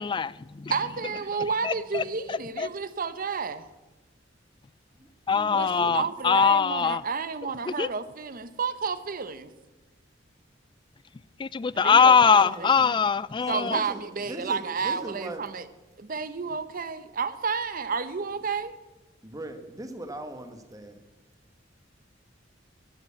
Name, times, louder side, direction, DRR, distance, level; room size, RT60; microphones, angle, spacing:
voice 1, 0.0-0.7 1.6-2.7 5.3-7.0 7.7-7.9 11.4-13.8, left 6 dB, 25° left, 20 dB, 0.3 m, -22 dB
voice 2, 0.7-3.7 5.5-9.5 11.7-13.0 13.5-15.7 16.0-18.7, right 5 dB, 50° right, 13 dB, 0.8 m, -31 dB
voice 3, 5.0-6.1 12.4-12.7 13.4-15.4 16.4-16.5 19.2-21.0, right 1 dB, 20° right, 7 dB, 1.2 m, -40 dB
13.0 x 7.9 x 8.5 m, 1.1 s
head